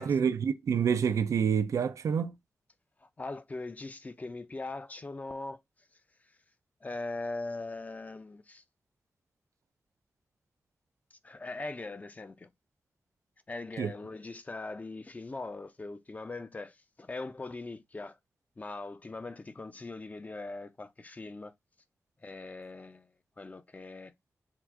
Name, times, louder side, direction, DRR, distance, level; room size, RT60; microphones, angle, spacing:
voice 1, 0.0-2.3 13.8-13.9, right 7 dB, 85° right, 0.4 m, -27 dB
voice 2, 3.0-5.6 6.8-8.6 11.2-12.5 13.5-18.2 18.6-21.5 22.2-23.1 23.4-24.1, left 3 dB, 30° left, 0.5 m, -41 dB
3.6 x 2.4 x 4.5 m
wide cardioid pair, 90°, 5 cm